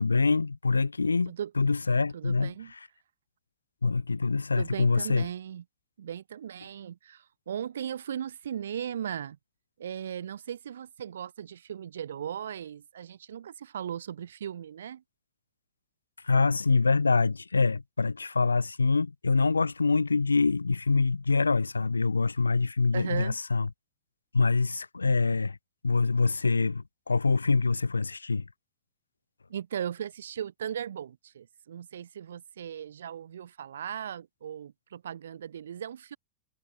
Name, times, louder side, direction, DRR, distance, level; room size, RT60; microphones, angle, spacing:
voice 1, 0.0-2.5 3.8-5.3 16.2-23.7 24.3-25.6 25.8-28.4, left 4 dB, 80° left, 0.9 m, -25 dB
voice 2, 2.1-2.7 4.6-5.6 6.0-9.4 9.8-15.0 22.9-23.4 25.0-25.1 29.5-36.2, right 9 dB, 65° right, 3.1 m, -37 dB
figure-of-eight pair, 90°, 0 cm